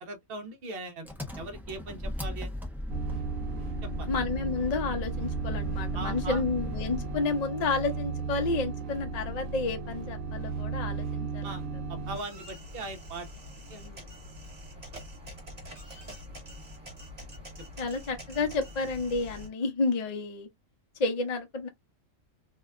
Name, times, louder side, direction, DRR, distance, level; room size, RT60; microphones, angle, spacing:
voice 1, 0.0-1.1 1.4-2.5 4.0-4.1 5.9-6.4 11.4-11.6 11.9-13.3 13.7-13.8, right 2 dB, 55° right, 0.8 m, -39 dB
Engine, 1.0-7.3, left 1 dB, 5° right, 0.3 m, -37 dB
sound 1, 2.9-12.2, right 5 dB, 80° right, 1.0 m, -35 dB
voice 2, 4.1-11.5 13.7-14.0 17.8-20.5 21.0-21.7, left 3 dB, 45° left, 0.6 m, -31 dB
sound 2, 12.1-19.5, equal, 30° right, 1.2 m, -45 dB
2.7 x 2.3 x 2.2 m
omnidirectional pair, 1.4 m